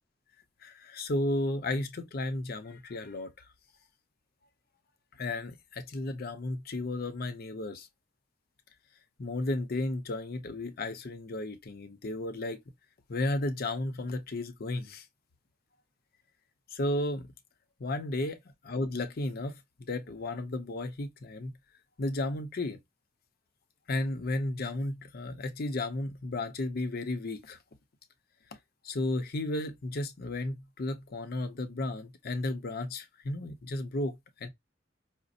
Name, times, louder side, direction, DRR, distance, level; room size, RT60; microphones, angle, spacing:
voice 1, 0.6-3.3 5.2-7.9 9.2-12.6 13.1-15.0 16.7-17.3 17.8-18.4 18.6-21.5 22.0-22.8 23.9-27.6 28.8-34.2 34.4-34.5, left 2 dB, 55° left, 0.6 m, -33 dB
5.0 x 2.0 x 2.5 m
head